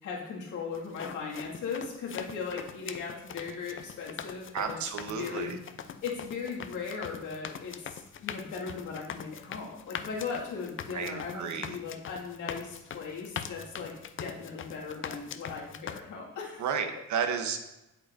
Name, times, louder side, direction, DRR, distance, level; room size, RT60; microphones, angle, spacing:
voice 1, 0.0-4.8 5.2-5.6 6.0-16.6, left 5 dB, 80° left, -3 dB, 2.1 m, -38 dB
sound 1, 0.7-16.0, left 8 dB, 40° left, 0.5 m, -42 dB
voice 2, 4.5-5.6 10.9-11.8 16.6-17.6, right 7 dB, 70° right, 6 dB, 1.0 m, -32 dB
8.0 x 8.0 x 2.6 m, 0.93 s
cardioid pair, 90°, 30 cm